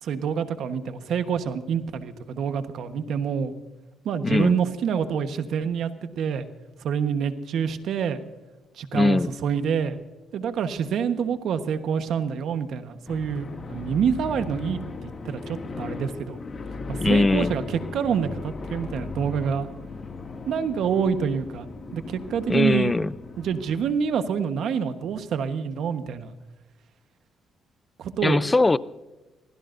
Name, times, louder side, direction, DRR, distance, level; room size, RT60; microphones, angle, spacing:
voice 1, 0.0-3.5 4.0-5.9 6.1-6.5 6.8-8.2 8.8-10.0 10.3-16.4 16.9-19.7 20.5-22.9 23.4-26.3 28.0-28.4, right 7 dB, 70° right, 1.2 m, -27 dB
voice 2, 4.2-4.6 8.9-9.3 17.0-17.5 22.5-23.1 28.2-28.8, left 2 dB, 20° left, 0.5 m, -21 dB
sound 1, 13.1-23.9, left 3 dB, 40° left, 2.3 m, -37 dB
24.5 x 16.5 x 2.7 m
cardioid pair, 90°, 0 cm